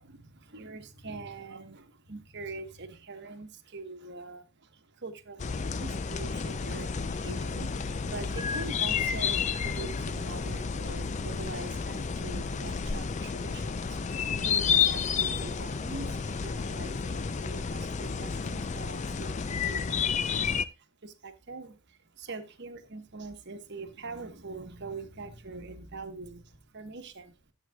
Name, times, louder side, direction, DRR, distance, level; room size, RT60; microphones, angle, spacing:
voice 1, 0.0-27.5, right 3 dB, 50° right, 1.1 m, -44 dB
sound 1, 5.4-20.6, left 6 dB, 30° left, 0.4 m, -31 dB
13.0 x 8.0 x 2.3 m
head